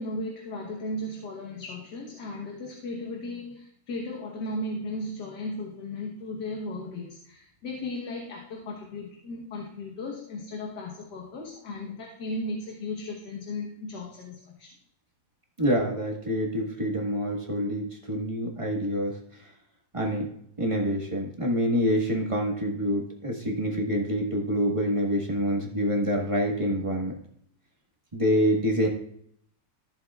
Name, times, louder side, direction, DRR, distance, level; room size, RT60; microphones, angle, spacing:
voice 1, 0.0-14.8, left 2 dB, 70° left, 0 dB, 1.8 m, -36 dB
voice 2, 15.6-19.2 19.9-20.3 20.6-27.1 28.1-28.9, equal, 20° right, -1 dB, 1.5 m, -26 dB
14.5 x 7.2 x 2.4 m, 0.67 s
omnidirectional pair, 1.9 m